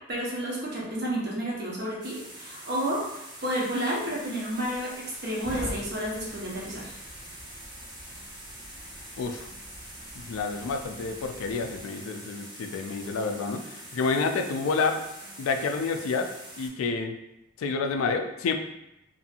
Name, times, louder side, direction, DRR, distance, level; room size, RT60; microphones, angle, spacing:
voice 1, 0.1-6.9, right 1 dB, 50° right, -4 dB, 0.8 m, -31 dB
sound 1, 2.0-16.7, right 1 dB, 20° right, 0.7 m, -45 dB
sound 2, 4.2-11.8, equal, 15° left, 0.8 m, -45 dB
voice 2, 9.2-9.5 10.1-15.0 15.4-16.3 16.6-17.1 17.6-18.5, left 4 dB, 85° left, 6 dB, 0.3 m, -29 dB
2.7 x 2.6 x 2.5 m, 0.86 s
head